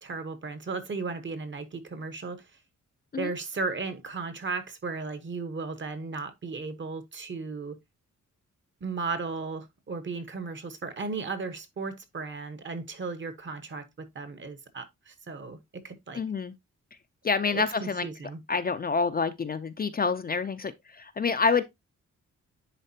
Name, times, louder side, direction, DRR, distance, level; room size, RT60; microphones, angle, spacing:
voice 1, 0.0-2.4 3.2-7.7 8.8-16.2 17.4-18.4, right 4 dB, 40° right, 1.1 m, -35 dB
voice 2, 16.1-16.5 17.2-18.1 18.5-21.6, left 5 dB, 30° left, 0.5 m, -27 dB
10.0 x 4.1 x 2.8 m
wide cardioid pair, 160°, 30 cm